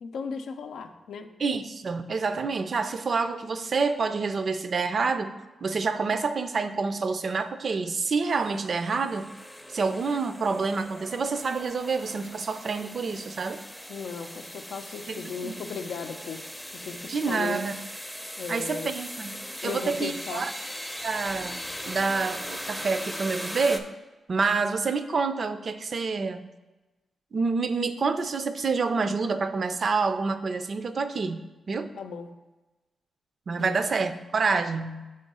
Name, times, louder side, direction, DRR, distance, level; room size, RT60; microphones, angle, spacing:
voice 1, 0.0-1.3 13.9-16.5 16.8-17.6 18.4-18.9 19.6-20.5 31.9-32.3 33.6-33.8, left 5 dB, 85° left, 7 dB, 0.4 m, -36 dB
voice 2, 1.4-5.3 5.6-9.3 9.7-13.6 15.1-15.6 17.1-17.7 18.5-19.3 19.6-20.5 21.0-23.9 24.3-26.5 27.3-31.9 33.5-35.1, right 4 dB, 50° right, 10 dB, 0.4 m, -28 dB
sound 1, 8.3-23.8, equal, ahead, 0.5 m, -39 dB
5.4 x 3.7 x 5.3 m, 1.1 s
cardioid pair, 95°, 0 cm